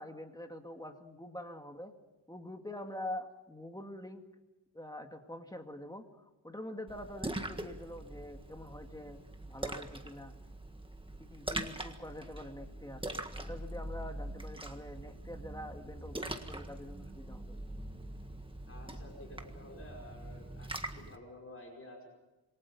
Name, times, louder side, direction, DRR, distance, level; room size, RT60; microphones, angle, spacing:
voice 1, 0.0-1.9 2.3-4.2 4.7-9.2 9.5-10.3 11.2-13.0 13.4-17.5, left 1 dB, 10° left, 4 dB, 2.1 m, -45 dB
Splash splatter, 6.9-21.2, right 1 dB, 10° right, 1.7 m, -43 dB
voice 2, 18.7-22.1, left 1 dB, 30° left, 0 dB, 5.4 m, -51 dB
27.0 x 23.0 x 5.5 m, 1.0 s
wide cardioid pair, 160°, 46 cm